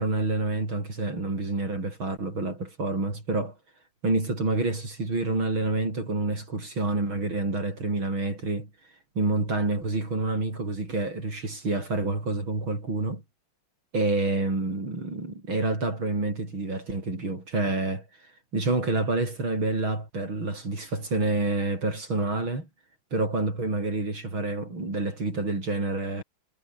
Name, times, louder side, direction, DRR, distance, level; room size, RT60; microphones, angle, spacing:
voice 1, 0.0-3.5 4.0-8.7 9.1-13.2 13.9-18.0 18.5-22.7 23.1-26.2, right 2 dB, 85° right, 8.4 m, -28 dB
omnidirectional pair, 2.2 m